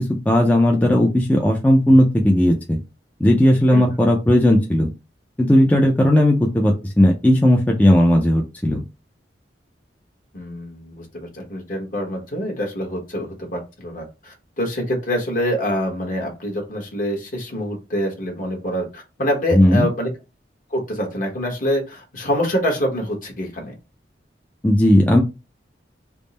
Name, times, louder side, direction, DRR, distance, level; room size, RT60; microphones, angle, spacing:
voice 1, 0.3-2.8 3.2-4.9 5.4-8.8 19.5-19.9 24.6-25.2, left 1 dB, 10° left, 0 dB, 0.4 m, -16 dB
voice 2, 10.3-20.1 20.7-23.8, equal, 50° left, 1 dB, 1.1 m, -25 dB
3.5 x 2.0 x 4.0 m, 0.28 s
head